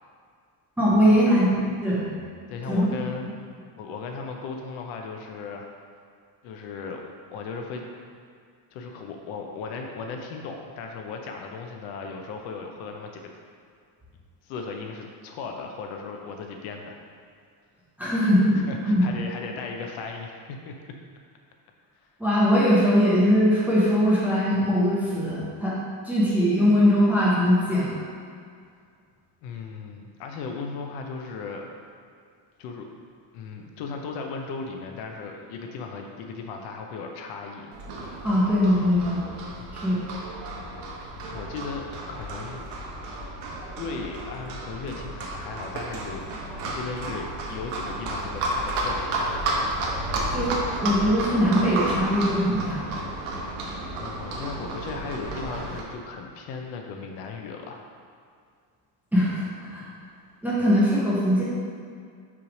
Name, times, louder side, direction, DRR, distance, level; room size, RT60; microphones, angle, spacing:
voice 1, 0.8-1.5 1.8-2.1 2.7-2.9 18.0-19.0 22.2-25.8 26.0-28.0 38.2-39.2 39.7-40.0 50.3-50.5 50.8-52.8 59.1-59.8 60.4-61.4, equal, 5° right, -9 dB, 0.6 m, -21 dB
voice 2, 2.5-3.3 3.8-5.7 6.4-7.9 8.7-13.3 14.4-17.0 18.0-18.3 18.7-20.7 29.4-31.6 32.6-32.9 33.3-37.7 39.6-39.7 41.2-42.6 43.8-49.5 54.0-57.9, left 4 dB, 65° left, 2 dB, 0.8 m, -36 dB
Livestock farm animals working animals, 37.7-55.8, right 1 dB, 75° right, 1.2 m, -32 dB
5.9 x 3.2 x 5.1 m, 2.2 s
cardioid pair, 175°, 50 cm